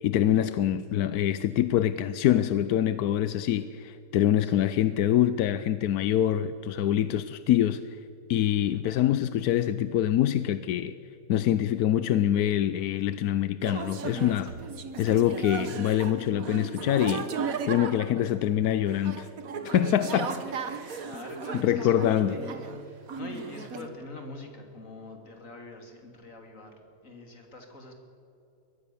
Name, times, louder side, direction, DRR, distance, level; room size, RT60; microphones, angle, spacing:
voice 1, 0.0-7.8 8.3-10.9 11.3-14.5 15.0-17.3 17.6-19.3 19.6-20.3 21.5-22.4, left 11 dB, 70° left, 14 dB, 1.0 m, -25 dB
voice 2, 4.4-4.8 14.5-14.9 20.1-27.9, left 1 dB, 45° left, 3 dB, 3.2 m, -44 dB
sound 1, 13.6-22.8 23.1-23.9, right 5 dB, 50° right, 1.6 m, -36 dB
23.0 x 18.5 x 7.0 m, 2.9 s
omnidirectional pair, 2.0 m